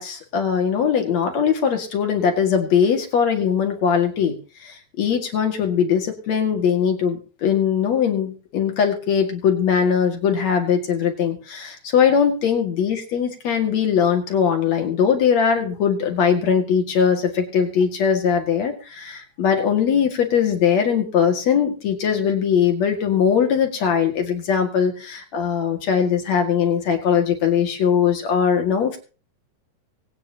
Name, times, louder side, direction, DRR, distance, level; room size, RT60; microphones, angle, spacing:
voice 1, 0.0-4.4 4.6-29.0, left 7 dB, 65° left, 3 dB, 3.3 m, -20 dB
24.0 x 9.5 x 2.9 m, 0.35 s
omnidirectional pair, 3.3 m